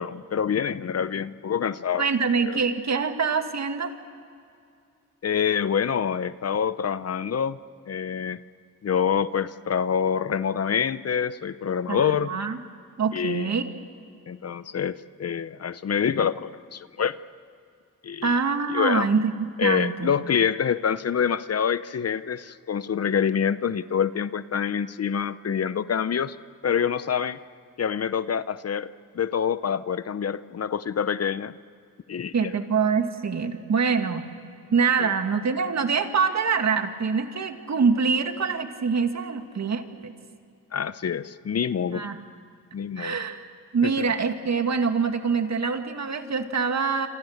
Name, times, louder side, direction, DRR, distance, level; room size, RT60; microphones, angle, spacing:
voice 1, 0.0-2.1 2.4-2.6 5.2-7.6 7.9-8.4 8.8-12.3 13.1-13.5 14.3-17.2 18.0-18.3 18.7-19.1 19.6-26.4 26.6-27.4 27.8-31.5 32.1-32.5 35.0-35.1 40.7-42.1 42.7-43.2 43.8-43.9, left 7 dB, 45° left, 15 dB, 0.8 m, -26 dB
voice 2, 2.0-3.9 11.9-12.6 13.0-13.7 18.2-20.1 32.3-34.2 34.7-40.1 41.9-42.2 43.0-43.4 43.7-47.1, right 5 dB, 50° right, 7 dB, 2.1 m, -25 dB
28.5 x 26.5 x 6.6 m, 2.4 s
cardioid pair, 85°, 34 cm